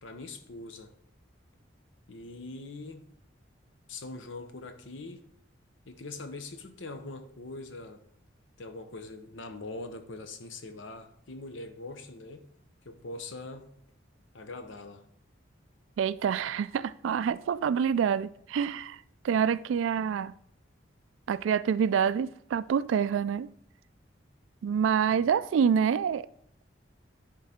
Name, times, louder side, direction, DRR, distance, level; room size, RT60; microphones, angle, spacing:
voice 1, 0.0-0.9 2.1-3.1 3.9-5.2 5.9-8.0 8.6-12.5 12.8-13.7 14.3-15.0 25.1-25.3, left 2 dB, 80° left, 0.8 m, -42 dB
voice 2, 16.0-20.3 21.3-23.5 24.6-26.3, right 7 dB, 80° right, 0.3 m, -27 dB
10.5 x 3.8 x 4.3 m
head